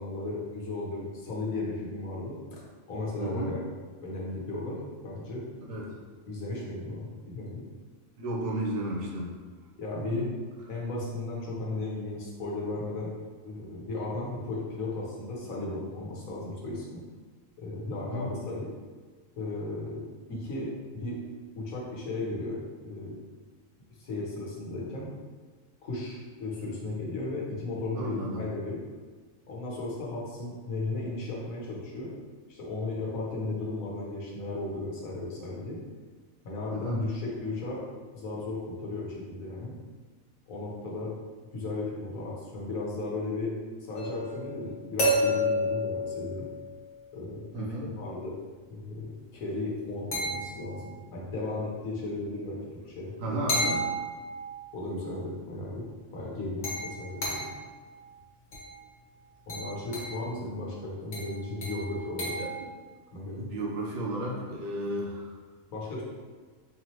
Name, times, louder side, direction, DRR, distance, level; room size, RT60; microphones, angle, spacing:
voice 1, 0.0-2.6 2.9-3.6 4.0-5.4 5.7-5.9 6.3-7.6 9.8-10.2 10.7-13.1 13.4-17.0 17.6-18.7 19.3-21.2 21.6-22.6 22.8-23.2 24.0-25.1 25.8-28.8 29.5-32.1 32.5-35.8 36.4-37.8 38.1-39.8 40.5-41.1 41.5-43.5 43.8-46.5 47.1-48.3 48.7-52.6 52.9-53.4 54.7-57.5 59.5-62.3 63.1-63.4 65.7-66.0, left 2 dB, 85° left, -4 dB, 1.4 m, -35 dB
voice 2, 8.2-9.3 10.0-10.3 18.1-18.3 27.9-28.5 36.7-37.1 47.5-47.9 53.2-53.8 62.4-62.5 63.4-65.3, right 1 dB, 75° right, -3 dB, 1.2 m, -33 dB
sound 1, 44.0-47.0 50.1-50.9 53.5-54.7 56.6-57.7 58.5-58.8 59.5-60.2 61.1-62.6, equal, 65° left, 1.4 m, -31 dB
4.1 x 3.0 x 2.9 m, 1.4 s
omnidirectional pair, 1.4 m